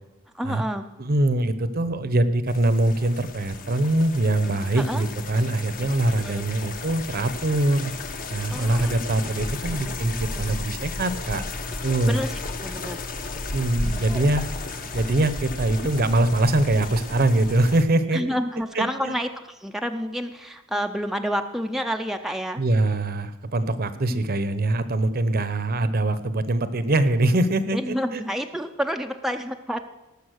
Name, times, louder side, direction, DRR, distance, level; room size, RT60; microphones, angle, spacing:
voice 1, 0.3-0.9 4.3-5.0 5.8-5.9 6.2-6.4 8.5-8.9 9.3-9.4 9.8-10.0 10.3-10.4 12.1-13.0 14.1-14.2 16.0-16.2 18.1-22.6 24.1-24.3 27.7-29.8, equal, ahead, 4 dB, 0.5 m, -29 dB
voice 2, 1.0-7.9 8.3-11.5 11.8-12.2 13.5-14.5 14.9-18.2 18.7-19.1 22.6-28.2, right 1 dB, 45° right, 13 dB, 0.8 m, -23 dB
sound 1, 2.5-17.8, left 2 dB, 40° left, 1.0 m, -34 dB
18.5 x 7.0 x 6.4 m, 1.0 s
head